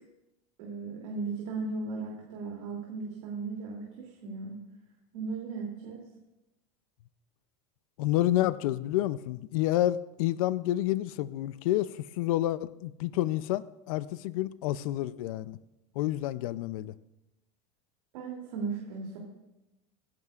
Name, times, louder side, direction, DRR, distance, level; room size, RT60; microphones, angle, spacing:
voice 1, 0.6-4.5 5.1-6.0 18.1-19.2, right 4 dB, 80° right, -2 dB, 2.8 m, -36 dB
voice 2, 8.0-15.6 16.0-17.0, left 14 dB, 70° left, 16 dB, 0.5 m, -29 dB
26.0 x 11.0 x 2.4 m, 0.93 s
supercardioid pair, 180°, 18 cm